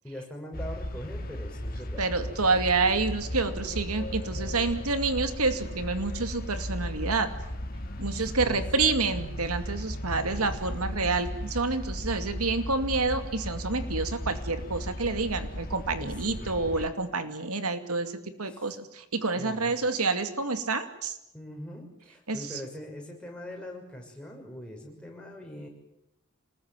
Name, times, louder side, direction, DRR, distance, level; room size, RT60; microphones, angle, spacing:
voice 1, 0.0-2.6 4.3-4.5 8.1-8.9 16.0-16.7 18.4-18.7 19.4-19.7 21.3-25.7, left 1 dB, 5° left, 0 dB, 6.6 m, -42 dB
sound 1, 0.5-16.9, equal, 40° left, 2.7 m, -36 dB
voice 2, 2.0-7.3 8.0-21.2 22.3-22.6, right 3 dB, 90° right, 8 dB, 2.5 m, -28 dB
27.5 x 20.5 x 9.2 m, 0.85 s
head